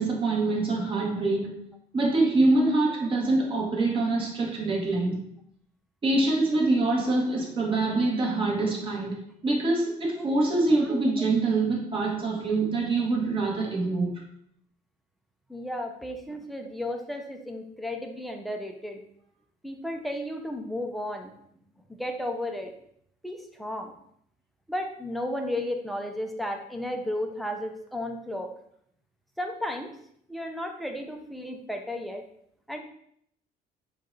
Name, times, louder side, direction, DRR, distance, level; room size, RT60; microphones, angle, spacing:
voice 1, 0.0-1.6 1.9-5.2 6.0-9.1 9.4-14.1, right 2 dB, 30° right, -2 dB, 1.4 m, -25 dB
voice 2, 15.5-19.0 19.6-21.4 21.9-22.7 23.2-24.0 24.7-28.5 29.4-29.9 30.3-32.2 32.7-32.8, left 1 dB, ahead, 3 dB, 0.6 m, -33 dB
4.6 x 2.4 x 3.9 m, 0.70 s
cardioid pair, 110°, 17 cm